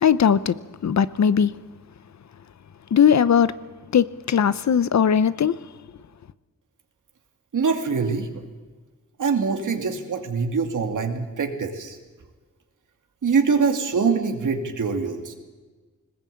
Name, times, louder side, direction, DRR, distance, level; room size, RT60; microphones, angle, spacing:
voice 1, 0.0-0.5 0.8-1.5 2.9-3.5 3.9-5.5, left 7 dB, 65° left, 0.8 m, -19 dB
voice 2, 7.5-8.4 9.2-12.0 13.2-15.3, right 5 dB, 80° right, 2.7 m, -24 dB
21.0 x 20.0 x 8.5 m
wide cardioid pair, 120°, 30 cm